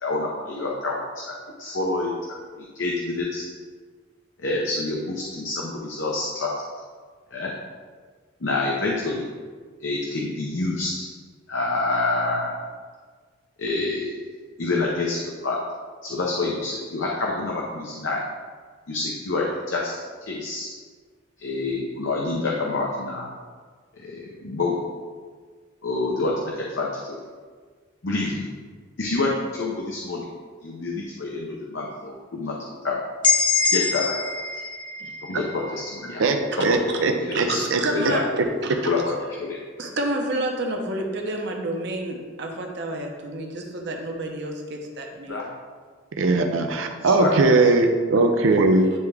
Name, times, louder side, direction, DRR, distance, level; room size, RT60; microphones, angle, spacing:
voice 1, 0.0-2.1 2.6-3.5 4.4-6.6 7.3-7.5 8.4-9.3 9.8-11.1 11.5-12.6 13.6-14.2 14.6-15.6 16.0-18.2 18.9-20.7 21.4-23.3 24.0-24.8 25.8-27.2 28.0-28.5 29.0-30.3 30.6-32.6 32.8-33.0 33.7-34.3 35.2-36.2 36.6-36.7 37.0-37.6 37.9-38.2 38.8-39.6 45.3-45.4 47.0-47.7, left 3 dB, 70° left, -2 dB, 0.7 m, -27 dB
sound 1, 33.2-37.1, left 5 dB, 25° left, 0.7 m, -25 dB
voice 2, 36.2-37.8 38.4-38.8 46.2-48.9, right 2 dB, 80° right, 5 dB, 0.6 m, -20 dB
voice 3, 37.3-38.3 38.6-38.9 39.8-45.4, right 1 dB, 60° right, 2 dB, 0.9 m, -29 dB
9.4 x 3.5 x 3.4 m, 1.5 s
head